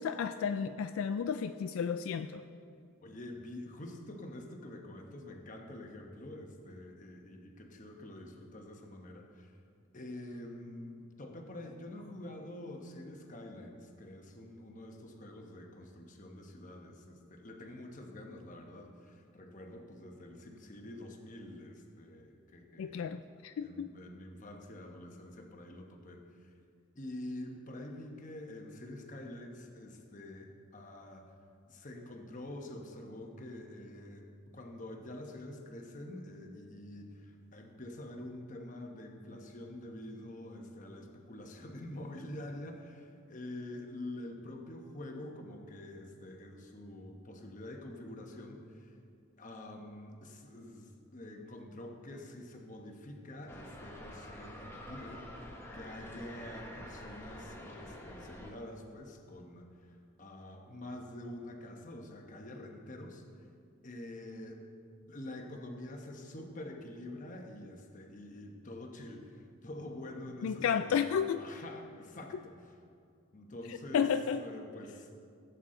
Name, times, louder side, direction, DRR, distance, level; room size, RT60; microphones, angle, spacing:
voice 1, 0.0-2.4 22.8-23.9 70.4-71.4 73.7-74.4, left 7 dB, 75° left, 9 dB, 0.3 m, -32 dB
voice 2, 3.0-9.5 9.9-23.1 23.6-26.5 26.9-31.2 31.7-34.3 34.5-49.0 49.4-63.2 63.8-64.6 65.1-71.0 71.4-72.8 73.3-74.1 74.4-75.1, left 1 dB, 35° left, 2 dB, 1.0 m, -46 dB
sound 1, 53.5-58.5, left 1 dB, 10° left, 0.9 m, -47 dB
15.5 x 8.0 x 3.8 m, 2.3 s
head